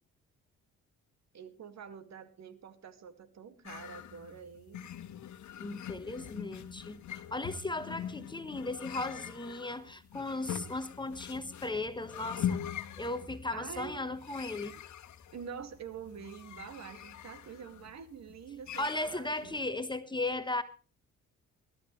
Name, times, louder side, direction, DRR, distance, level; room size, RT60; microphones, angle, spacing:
voice 1, 1.3-4.9 13.5-14.0 15.3-19.6, right 7 dB, 60° right, 2.1 m, -46 dB
sound 1, 3.7-19.6, left 9 dB, 70° left, 1.3 m, -43 dB
voice 2, 5.6-12.6 13.0-14.8 18.8-20.6, left 2 dB, 15° left, 1.2 m, -36 dB
21.0 x 12.5 x 3.2 m
cardioid pair, 90°, 30 cm